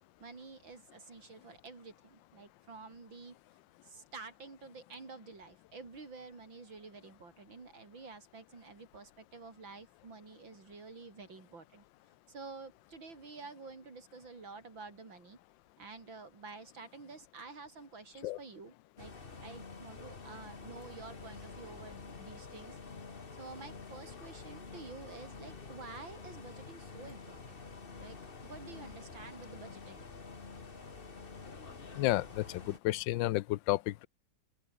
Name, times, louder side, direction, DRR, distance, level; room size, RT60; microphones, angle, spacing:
voice 1, 0.2-3.4 3.8-11.8 12.3-15.4 15.8-19.1 19.4-22.8 23.4-27.6 28.0-28.2 28.4-30.1, right 4 dB, 75° right, 4.8 m, -50 dB
sound 1, 19.0-32.8, left 4 dB, 30° left, 1.7 m, -48 dB
voice 2, 32.0-34.1, left 17 dB, 75° left, 1.2 m, -31 dB
open air
omnidirectional pair, 2.1 m